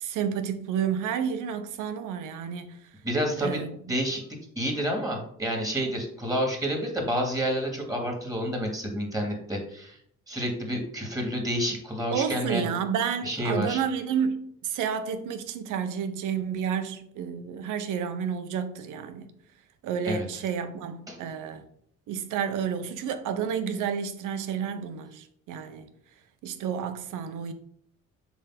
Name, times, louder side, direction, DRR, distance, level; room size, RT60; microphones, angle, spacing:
voice 1, 0.0-2.8 3.4-3.8 12.1-19.3 19.8-21.6 22.1-25.9 26.4-27.5, right 7 dB, 90° right, 1.0 m, -30 dB
voice 2, 3.0-3.6 3.9-4.2 4.6-10.0 10.3-12.7 13.2-13.8 20.1-20.3 21.1-21.2, equal, 10° right, 2.8 m, -29 dB
7.2 x 3.6 x 6.1 m
cardioid pair, 90°, 30 cm